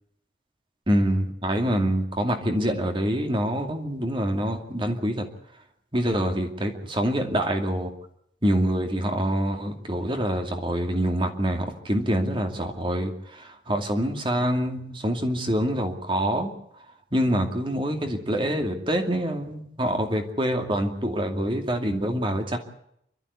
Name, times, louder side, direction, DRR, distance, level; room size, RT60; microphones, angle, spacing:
voice 1, 0.9-5.2 5.9-7.9 8.4-16.5 17.1-22.6, equal, 25° right, 5 dB, 2.4 m, -26 dB
29.5 x 13.0 x 8.3 m, 0.73 s
head